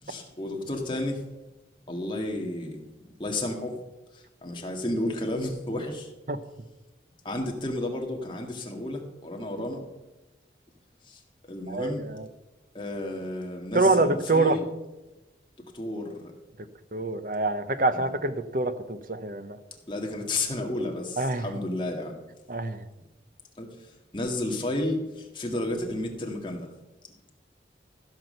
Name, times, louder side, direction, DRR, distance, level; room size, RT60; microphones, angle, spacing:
voice 1, 0.0-1.2 1.9-2.9 3.2-3.8 4.1-6.1 7.2-9.8 11.0-11.2 11.5-12.0 12.7-14.6 15.7-16.3 17.9-18.1 19.9-22.2 23.6-23.9 24.1-26.7, left 1 dB, 25° left, 1 dB, 1.8 m, -32 dB
voice 2, 11.7-12.3 13.7-14.6 16.9-19.6 21.2-21.5 22.5-22.8, right 2 dB, 50° right, 10 dB, 0.9 m, -25 dB
15.0 x 6.3 x 6.6 m, 1.0 s
head